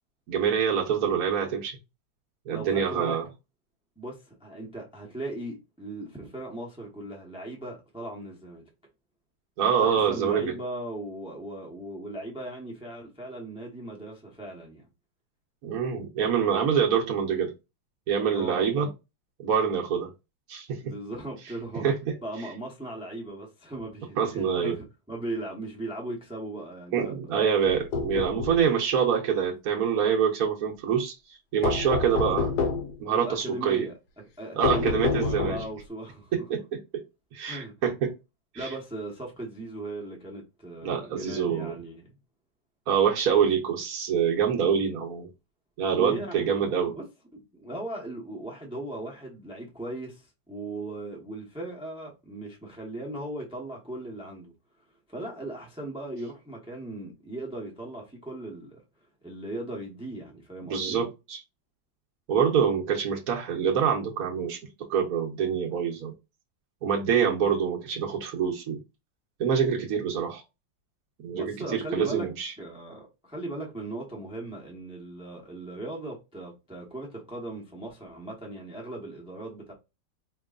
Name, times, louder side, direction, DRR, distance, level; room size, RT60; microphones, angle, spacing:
voice 1, 0.3-1.8 2.5-3.2 9.6-10.5 15.6-17.5 18.1-18.9 19.4-20.1 20.5-20.8 21.8-22.1 24.2-24.7 26.9-32.5 33.0-33.9 34.6-35.6 36.3-36.6 37.3-38.1 38.5-38.7 40.8-41.8 42.9-45.3 45.8-46.9 60.7-61.4 62.3-64.6 64.9-66.1 66.8-68.8 69.4-70.4 71.2-72.5, right 7 dB, 60° right, 1.1 m, -25 dB
voice 2, 2.5-3.2 4.0-8.7 9.8-14.9 18.3-18.7 20.8-21.9 22.2-27.4 33.1-33.9 34.4-36.3 37.4-37.7 38.5-42.2 45.9-46.4 46.8-47.1 47.3-54.5 55.1-58.8 59.2-61.0 71.3-72.3 72.6-79.7, right 1 dB, 5° right, 0.5 m, -38 dB
sound 1, 27.7-28.7 31.6-33.0 34.6-35.8, left 5 dB, 70° left, 1.0 m, -28 dB
4.4 x 3.0 x 2.4 m
omnidirectional pair, 2.1 m